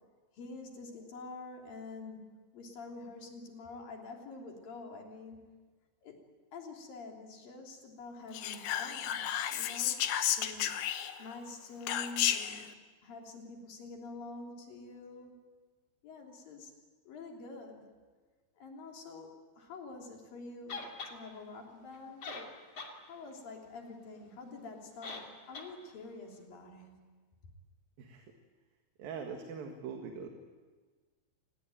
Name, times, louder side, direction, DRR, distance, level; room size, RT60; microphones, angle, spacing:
voice 1, 0.3-5.5 6.0-6.2 6.5-10.7 11.2-12.7 13.0-15.4 16.0-16.7 17.1-17.8 18.6-22.4 23.1-27.1, left 3 dB, 65° left, 1 dB, 4.9 m, -47 dB
Whispering, 8.3-11.3 11.9-12.6, left 11 dB, 90° left, 3.2 m, -32 dB
sound 1, 20.7-21.2 21.9-22.0 22.2-23.0 23.3-23.4 25.0-25.3 25.5-25.7, left 3 dB, 45° left, 3.3 m, -42 dB
voice 2, 29.0-30.3, right 6 dB, 70° right, 3 dB, 3.5 m, -42 dB
26.5 x 20.0 x 9.1 m, 1.4 s
omnidirectional pair, 4.4 m